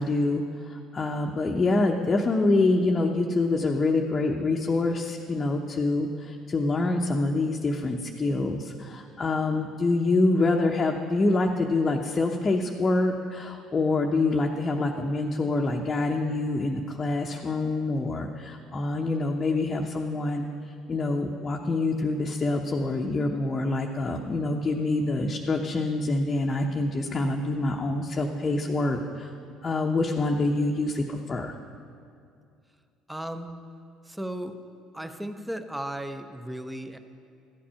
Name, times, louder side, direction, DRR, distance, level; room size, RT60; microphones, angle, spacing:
voice 1, 0.0-20.5 20.9-29.3 29.6-31.5, left 2 dB, 30° left, 0 dB, 0.8 m, -26 dB
voice 2, 33.1-33.5 34.0-34.6 34.9-37.0, right 1 dB, 5° right, 8 dB, 0.8 m, -35 dB
13.5 x 8.6 x 5.7 m, 2.4 s
supercardioid pair, 75°, 0 cm